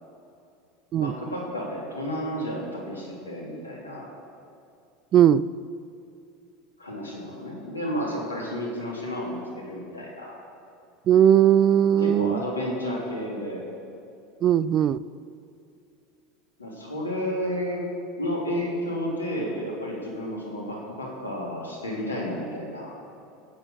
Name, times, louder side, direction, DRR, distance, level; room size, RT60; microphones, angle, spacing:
voice 1, 0.9-4.1 6.8-10.4 12.0-13.6 16.6-17.9 18.2-22.9, equal, 90° left, -2 dB, 3.2 m, -31 dB
voice 2, 5.1-5.4 11.1-12.4 14.4-15.0, right 10 dB, 40° right, 19 dB, 0.3 m, -18 dB
17.0 x 8.7 x 6.5 m, 2.6 s
figure-of-eight pair, 80°, 0 cm